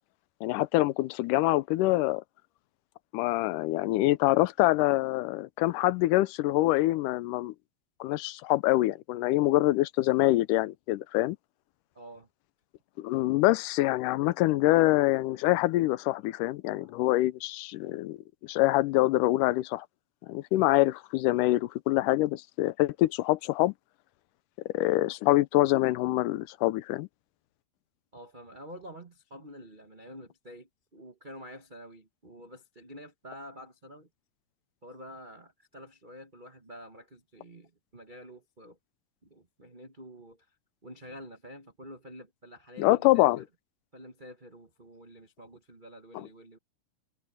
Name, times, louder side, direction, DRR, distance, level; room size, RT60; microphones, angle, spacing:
voice 1, 0.4-2.2 3.1-7.5 8.0-11.4 13.0-18.2 18.4-19.9 20.3-23.7 24.7-27.1 42.8-43.4 46.1-46.3, left 18 dB, 85° left, 2.2 m, -25 dB
voice 2, 11.9-12.3 16.7-17.0 28.1-34.1 34.8-38.8 39.2-40.5 40.8-43.5 43.9-46.6, equal, 80° right, 0.4 m, -48 dB
omnidirectional pair, 3.6 m